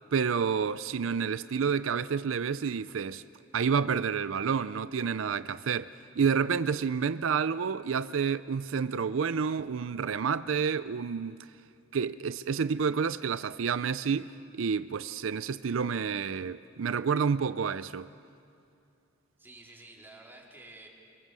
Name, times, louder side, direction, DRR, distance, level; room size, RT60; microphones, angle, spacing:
voice 1, 0.1-3.2 3.5-11.5 11.9-18.1, right 6 dB, 85° right, 0.5 m, -29 dB
voice 2, 19.4-20.9, right 2 dB, 10° right, 3.7 m, -50 dB
25.5 x 23.0 x 7.6 m
head